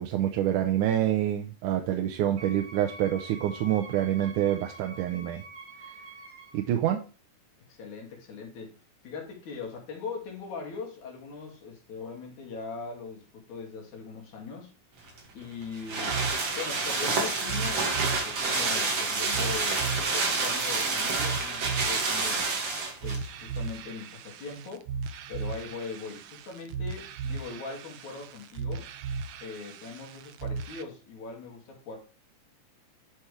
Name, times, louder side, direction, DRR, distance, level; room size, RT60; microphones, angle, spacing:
voice 1, 0.0-5.4 6.5-7.0, right 11 dB, 90° right, 2.3 m, -27 dB
Wind instrument woodwind instrument, 2.4-6.7, right 2 dB, 35° right, 3.0 m, -46 dB
voice 2, 7.7-8.8 9.0-14.7 15.3-16.2 16.5-22.4 23.0-24.9 25.3-28.9 29.4-32.0, left 4 dB, 70° left, 3.8 m, -40 dB
sound 1, 15.1-23.3 23.6-23.7, right 4 dB, 50° right, 3.0 m, -28 dB
sound 2, 16.1-30.8, right 5 dB, 70° right, 1.5 m, -37 dB
10.5 x 6.0 x 3.3 m
omnidirectional pair, 3.5 m